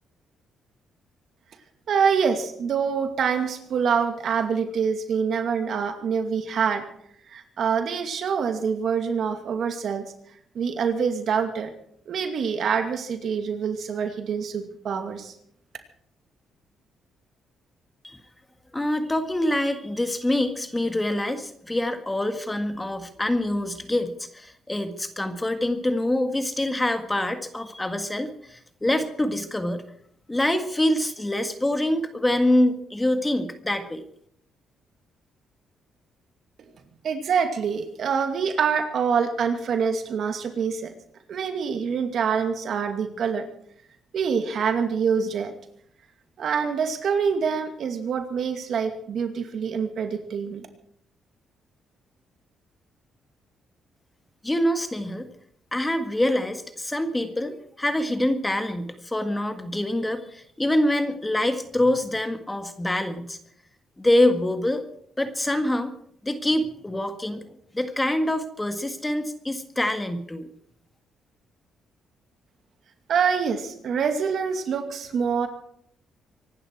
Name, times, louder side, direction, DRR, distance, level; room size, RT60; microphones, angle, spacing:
voice 1, 1.9-6.9 7.3-10.1 10.5-11.7 12.1-15.4 36.6-36.7 37.0-40.9 41.3-43.5 44.1-45.5 46.4-50.7 73.1-75.5, right 6 dB, 65° right, 6 dB, 2.4 m, -25 dB
voice 2, 18.7-29.8 30.3-34.0 54.4-55.3 55.7-63.4 64.0-64.8 65.2-65.9 66.2-67.4 67.7-70.5, left 1 dB, 15° left, 8 dB, 1.7 m, -25 dB
25.0 x 11.5 x 4.7 m, 0.67 s
cardioid pair, 90°, 0 cm